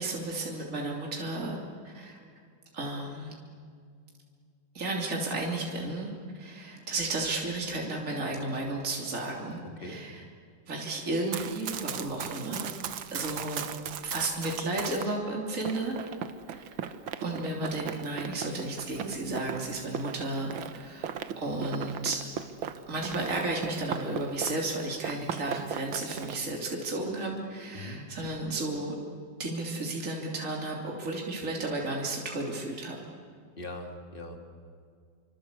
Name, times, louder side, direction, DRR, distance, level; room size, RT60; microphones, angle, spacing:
voice 1, 0.0-1.6 1.8-2.1 2.7-3.3 4.7-6.1 6.4-10.2 10.7-12.7 13.1-13.6 14.0-16.0 16.5-16.6 17.2-22.3 22.9-29.0 29.4-33.0, right 2 dB, 40° right, -1 dB, 3.6 m, -33 dB
Run, 11.1-15.1 15.7-24.7 25.0-26.4, right 8 dB, 90° right, 1.9 m, -38 dB
voice 2, 33.6-34.4, left 1 dB, 25° left, 3 dB, 3.1 m, -40 dB
28.0 x 25.0 x 8.4 m, 2.2 s
omnidirectional pair, 2.1 m